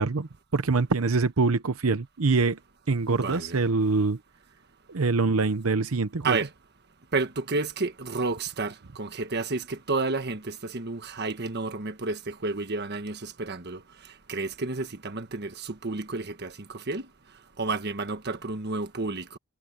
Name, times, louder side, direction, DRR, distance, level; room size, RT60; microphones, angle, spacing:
voice 1, 0.0-2.6 2.9-4.2 4.9-6.4, right 3 dB, 90° right, 0.8 m, -24 dB
voice 2, 3.1-3.6 6.2-6.5 7.1-13.8 14.3-17.0 17.6-19.4, right 3 dB, 50° right, 1.4 m, -31 dB
head